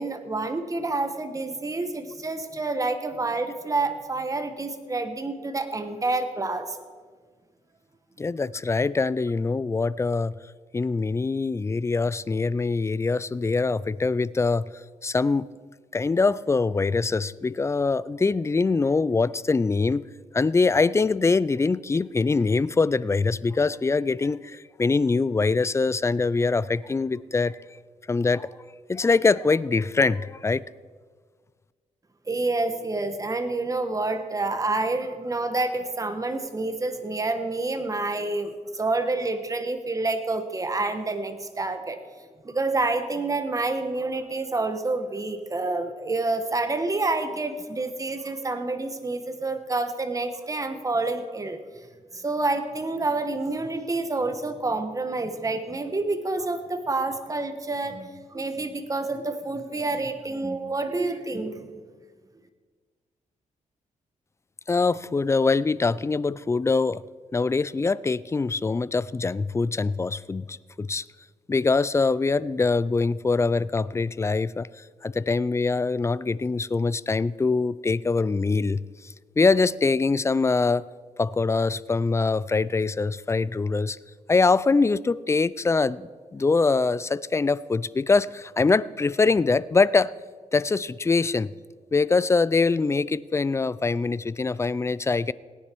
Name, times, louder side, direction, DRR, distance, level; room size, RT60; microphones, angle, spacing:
voice 1, 0.0-6.8 32.3-42.0 42.4-51.6 52.1-61.6, right 2 dB, 25° right, 9 dB, 1.2 m, -28 dB
voice 2, 8.2-10.4 10.7-14.7 15.0-15.5 15.9-20.0 20.3-27.6 28.1-28.5 28.9-30.6 64.7-67.0 67.3-71.0 71.5-74.7 75.0-80.9 81.2-84.0 84.3-90.1 90.5-91.5 91.9-95.3, left 4 dB, 20° left, 20 dB, 0.3 m, -23 dB
17.5 x 10.0 x 4.5 m, 1.5 s
cardioid pair, 85°, 14 cm